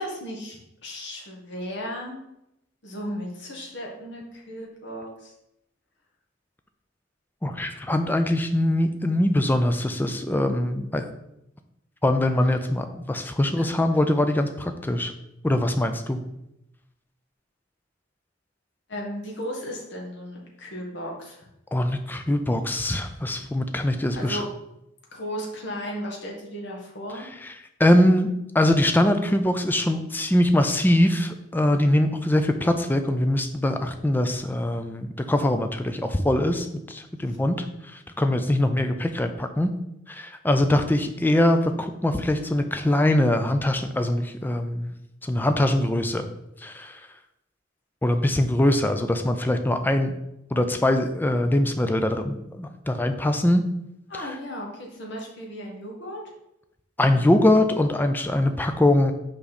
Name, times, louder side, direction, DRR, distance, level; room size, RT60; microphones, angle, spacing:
voice 1, 0.0-2.2 2.8-5.3 13.5-13.7 18.9-21.5 24.1-24.5 25.1-27.3 37.3-37.4 54.1-56.2, equal, 55° left, -1 dB, 1.6 m, -35 dB
voice 2, 7.4-11.0 12.0-15.1 15.4-16.2 21.7-24.4 27.4-27.5 27.8-37.7 37.9-39.7 40.1-44.9 45.2-46.3 46.6-47.0 48.0-50.1 50.5-53.6 54.2-54.3 57.0-59.1, left 1 dB, 10° left, 7 dB, 0.4 m, -22 dB
5.7 x 5.1 x 4.2 m, 0.85 s
head